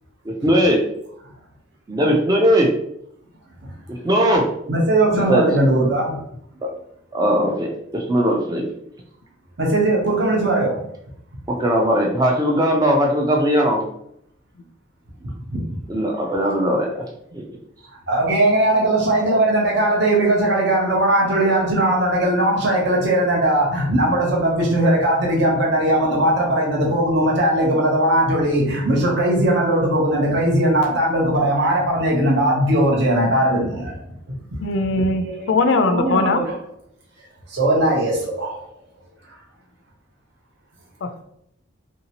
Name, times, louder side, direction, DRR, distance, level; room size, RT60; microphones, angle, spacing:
voice 1, 0.3-0.8 1.9-2.7 3.9-4.4 5.1-5.4 7.1-7.7 7.9-8.6 11.5-13.8 15.9-17.0 17.3-17.4, equal, 20° right, 0 dB, 0.4 m, -19 dB
voice 2, 4.7-6.2 9.6-10.8 15.5-15.8 18.1-34.0 34.9-35.5 35.8-36.4 37.5-38.6, right 1 dB, 60° right, -3 dB, 0.8 m, -19 dB
voice 3, 34.6-36.4 41.0-41.2, left 3 dB, 65° left, 8 dB, 0.4 m, -20 dB
3.1 x 2.7 x 2.8 m, 0.74 s
head